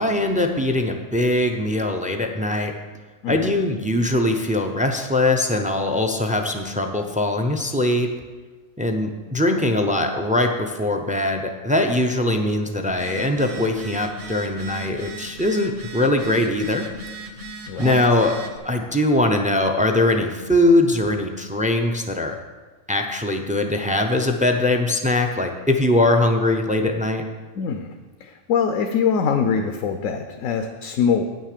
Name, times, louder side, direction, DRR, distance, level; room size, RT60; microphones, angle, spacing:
voice 1, 0.0-2.8 3.3-8.1 8.8-16.9 17.8-18.4 18.6-22.4 22.9-27.3, left 1 dB, 10° right, 5 dB, 0.3 m, -21 dB
voice 2, 3.2-3.5 17.7-18.2 27.5-27.9 28.2-31.2, left 6 dB, 85° left, 5 dB, 1.1 m, -23 dB
Telephone, 12.9-18.6, right 2 dB, 60° right, 1.4 m, -37 dB
9.3 x 6.4 x 6.7 m, 1.3 s
omnidirectional pair, 1.3 m